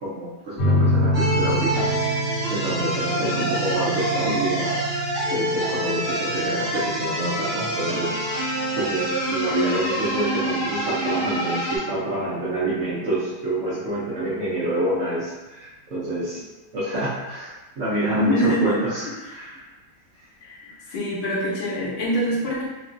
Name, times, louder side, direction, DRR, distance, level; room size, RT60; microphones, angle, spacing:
voice 1, 0.0-1.9 2.2-4.8 5.3-8.2 8.4-16.4 16.7-19.7, right 1 dB, 70° right, -9 dB, 0.7 m, -27 dB
sound 1, 0.6-11.6, equal, 60° left, 1.1 m, -28 dB
sound 2, 1.1-11.8, equal, 40° right, 1.4 m, -26 dB
voice 2, 18.2-18.8 19.3-19.5 20.4-20.6 20.9-22.6, equal, 80° left, -4 dB, 1.4 m, -25 dB
3.1 x 2.3 x 2.4 m, 1.1 s
omnidirectional pair, 2.0 m